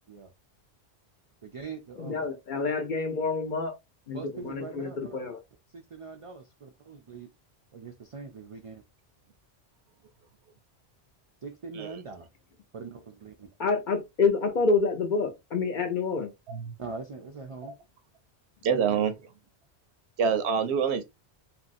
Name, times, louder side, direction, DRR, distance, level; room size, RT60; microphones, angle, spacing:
voice 1, 1.4-2.2 2.6-2.7 4.1-5.2 5.7-7.3 7.7-8.8 11.4-12.3 12.7-13.5 16.8-17.7, right 4 dB, 60° right, 0.3 m, -42 dB
voice 2, 2.0-3.7 4.1-5.4 13.6-16.3 18.7-19.1, left 4 dB, 55° left, 0.7 m, -28 dB
voice 3, 18.6-19.3 20.2-21.0, right 7 dB, 80° right, 0.8 m, -26 dB
2.9 x 2.6 x 2.4 m
omnidirectional pair, 1.1 m